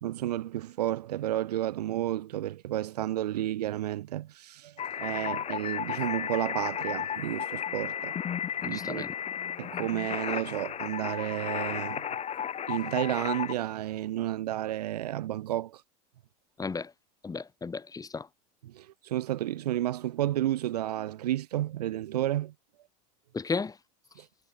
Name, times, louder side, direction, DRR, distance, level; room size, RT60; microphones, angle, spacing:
voice 1, 0.0-8.1 8.6-9.0 9.6-12.1 12.7-15.8 18.6-22.5 24.2-24.3, right 13 dB, 90° right, 4.0 m, -31 dB
sound 1, 4.8-13.5, left 9 dB, 35° left, 5.3 m, -34 dB
voice 2, 8.6-9.1 16.6-16.9 17.2-18.3 23.3-23.7, left 4 dB, 20° left, 5.1 m, -34 dB
supercardioid pair, 105°, 20 cm